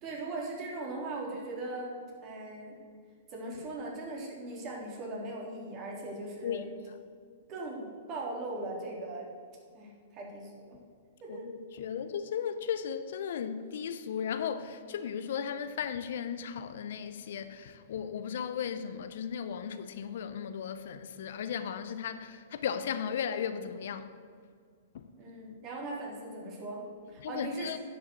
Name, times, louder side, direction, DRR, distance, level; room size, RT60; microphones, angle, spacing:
voice 1, 0.0-2.8 3.3-6.7 7.5-9.3 9.7-10.8 11.2-11.5 25.2-27.7, right 2 dB, 35° right, 3.4 m, -39 dB
voice 2, 11.3-24.2 24.9-25.1 27.2-27.8, left 8 dB, 65° left, 0.7 m, -36 dB
10.5 x 6.8 x 6.9 m
hypercardioid pair, 120°, 0 cm